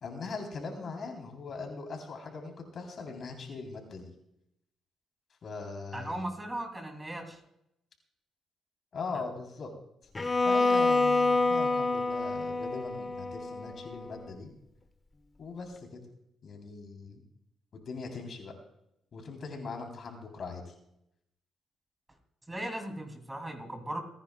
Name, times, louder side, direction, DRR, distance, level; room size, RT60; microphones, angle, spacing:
voice 1, 0.0-4.1 5.4-6.2 8.9-9.7 10.4-14.5 15.4-16.0 16.4-17.2 17.7-18.5 19.1-20.7, left 4 dB, 55° left, 3 dB, 3.5 m, -40 dB
voice 2, 5.9-7.4 9.1-9.2 22.5-24.0, right 1 dB, 15° right, 5 dB, 2.8 m, -37 dB
Bowed string instrument, 10.2-14.2, left 3 dB, 25° left, 1.0 m, -27 dB
28.5 x 10.0 x 2.3 m, 0.80 s
cardioid pair, 90°, 0 cm